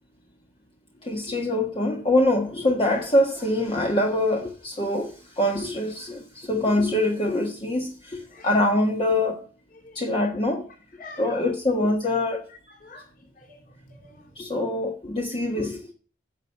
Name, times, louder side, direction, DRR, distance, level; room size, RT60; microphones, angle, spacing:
voice 1, 1.0-9.4 9.9-10.7 11.2-12.5 14.4-15.9, left 1 dB, 30° left, 1.6 m, -24 dB
voice 2, 11.0-11.5 12.8-13.1 13.3-14.3, left 3 dB, 50° left, 3.8 m, -45 dB
10.5 x 7.1 x 7.2 m
head